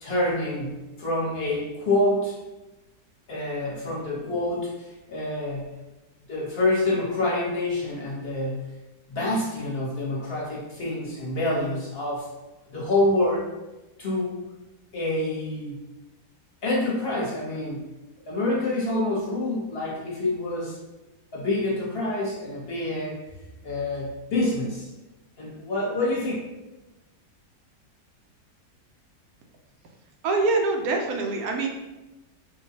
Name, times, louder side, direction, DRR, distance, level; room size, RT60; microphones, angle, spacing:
voice 1, 0.0-2.3 3.3-5.8 6.3-8.7 9.1-12.3 12.7-13.5 14.0-14.4 14.9-15.8 16.6-17.8 18.3-20.8 21.3-23.2 23.6-24.9 25.4-26.3, left 2 dB, 40° left, -5 dB, 1.1 m, -27 dB
voice 2, 30.2-31.7, right 3 dB, 70° right, 2 dB, 1.0 m, -24 dB
4.5 x 2.2 x 2.8 m, 1.0 s
omnidirectional pair, 1.7 m